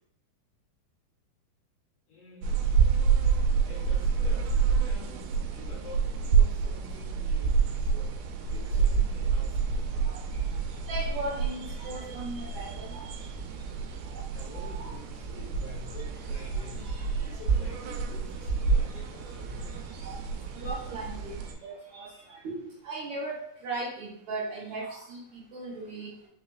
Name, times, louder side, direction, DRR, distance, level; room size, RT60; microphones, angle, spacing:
voice 1, 2.1-2.9 3.6-9.9 14.1-16.9 17.2-19.8, left 3 dB, 70° left, -5 dB, 2.2 m, -48 dB
sound 1, 2.4-21.5, right 6 dB, 85° right, 2.5 m, -28 dB
voice 2, 10.9-13.0 14.1-14.2 14.5-14.9 16.3-17.4 20.0-20.2 20.6-21.3 21.6-26.1, right 2 dB, 55° right, -8 dB, 2.4 m, -38 dB
5.7 x 3.0 x 2.4 m, 0.67 s
omnidirectional pair, 4.5 m